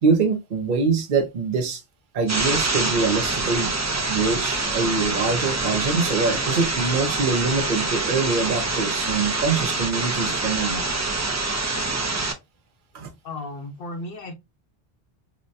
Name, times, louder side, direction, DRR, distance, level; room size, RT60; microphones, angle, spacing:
voice 1, 0.0-1.8 2.1-3.7 4.1-10.9 12.9-13.1, right 4 dB, 55° right, 0.8 m, -24 dB
sound 1, 2.3-12.3, right 3 dB, 30° right, 0.3 m, -25 dB
voice 2, 13.2-14.3, left 2 dB, 65° left, 1.0 m, -34 dB
4.0 x 2.1 x 2.5 m
omnidirectional pair, 1.0 m